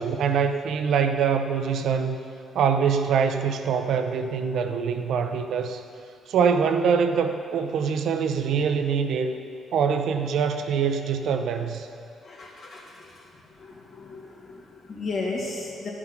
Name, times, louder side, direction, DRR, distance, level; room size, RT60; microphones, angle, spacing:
voice 1, 0.0-2.2 2.5-5.8 6.3-9.4 9.7-11.9, right 6 dB, 70° right, 7 dB, 0.6 m, -24 dB
voice 2, 12.2-13.2 13.6-15.9, left 3 dB, 60° left, -4 dB, 2.7 m, -35 dB
12.0 x 6.1 x 5.9 m, 2.5 s
supercardioid pair, 55°, 0 cm